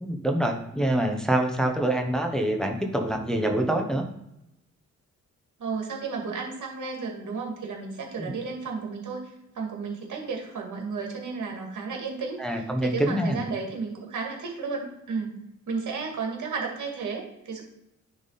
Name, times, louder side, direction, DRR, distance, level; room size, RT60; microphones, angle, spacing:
voice 1, 0.0-4.0 8.2-8.3 12.4-13.4, right 1 dB, ahead, 2 dB, 1.0 m, -25 dB
voice 2, 5.6-15.3 15.7-17.6, right 4 dB, 75° right, 0 dB, 2.1 m, -33 dB
10.0 x 3.6 x 4.1 m, 0.86 s
cardioid pair, 90°, 30 cm